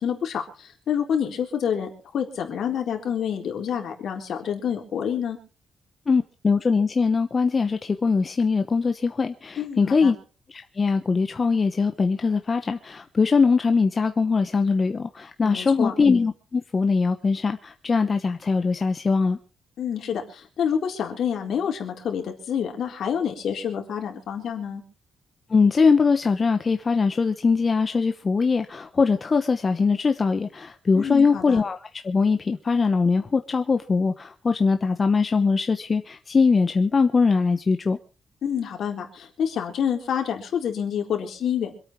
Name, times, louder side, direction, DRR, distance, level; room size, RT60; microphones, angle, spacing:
voice 1, 0.0-5.4 9.6-10.1 15.4-15.9 19.8-24.8 30.9-31.6 38.4-41.8, left 8 dB, 60° left, 4.1 m, -28 dB
voice 2, 6.1-10.2 10.5-19.4 25.5-31.8 32.0-38.0, left 4 dB, 25° left, 0.9 m, -22 dB
26.0 x 8.9 x 4.6 m
cardioid pair, 160°, 0 cm